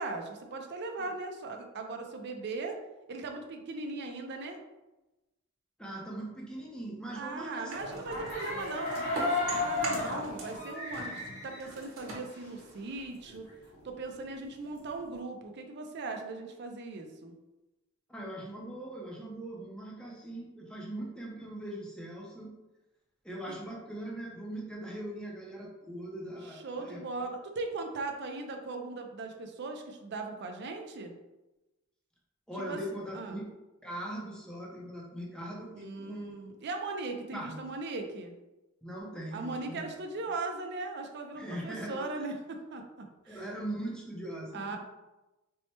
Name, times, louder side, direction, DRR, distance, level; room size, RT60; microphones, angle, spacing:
voice 1, 0.0-2.8 3.1-4.6 7.1-13.5 13.8-17.3 26.4-31.1 32.7-32.8 33.1-33.4 35.7-38.3 39.3-43.4 44.5-44.8, right 3 dB, 55° right, 4 dB, 0.5 m, -39 dB
voice 2, 5.8-8.0 18.1-22.5 23.2-27.0 32.5-33.5 33.8-36.5 37.3-37.6 38.8-39.9 41.3-42.1 43.3-44.8, right 1 dB, 5° left, -3 dB, 0.6 m, -40 dB
sound 1, 7.7-10.6 10.9-13.3, right 2 dB, 70° right, 1.1 m, -41 dB
sound 2, 8.0-12.6 13.0-13.1 13.3-15.1, left 3 dB, 90° left, 1.5 m, -35 dB
4.4 x 2.1 x 2.9 m, 1.0 s
head